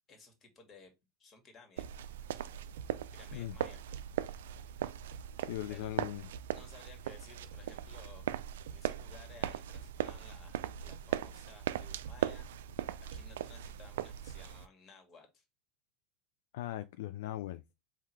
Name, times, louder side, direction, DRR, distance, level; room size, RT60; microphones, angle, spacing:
voice 1, 0.1-0.9 1.2-1.9 3.1-3.8 5.7-6.0 6.5-8.3 8.7-12.8 13.1-15.5, left 4 dB, 35° left, 1.9 m, -57 dB
sound 1, 1.8-14.7, right 10 dB, 80° right, 0.3 m, -39 dB
voice 2, 5.5-6.3 16.5-17.6, left 14 dB, 75° left, 0.3 m, -39 dB
3.8 x 2.8 x 4.6 m
hypercardioid pair, 100°, 0 cm